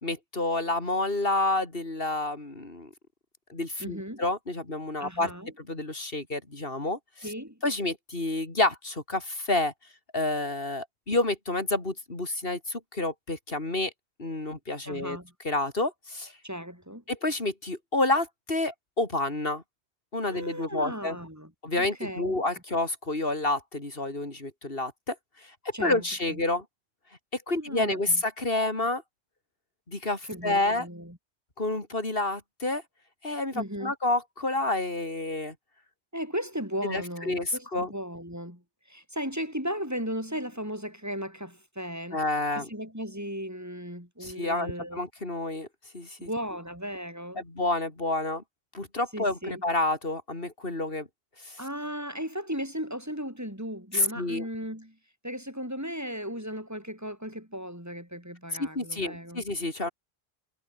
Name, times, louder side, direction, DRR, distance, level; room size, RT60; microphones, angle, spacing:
voice 1, 0.0-2.9 3.5-5.3 5.6-7.3 7.6-9.7 10.1-13.9 14.2-15.2 15.4-16.3 17.1-19.6 20.1-21.2 21.6-25.2 25.4-26.6 27.3-29.0 29.9-30.9 31.6-32.8 33.2-35.5 36.8-37.9 42.1-42.7 44.2-45.7 45.9-46.3 47.4-48.4 48.7-51.1 51.4-51.6 53.9-54.4 58.6-59.9, left 2 dB, 60° left, 4.6 m, -29 dB
voice 2, 3.8-4.2 5.0-5.5 7.2-7.6 14.8-15.3 16.4-17.0 20.3-21.5 21.8-22.3 25.7-26.4 27.5-28.2 30.3-31.2 33.5-33.9 36.1-42.2 42.5-45.0 46.2-47.4 49.1-49.6 51.6-55.0 55.2-59.4, equal, 15° right, 6.5 m, -36 dB
omnidirectional pair, 1.1 m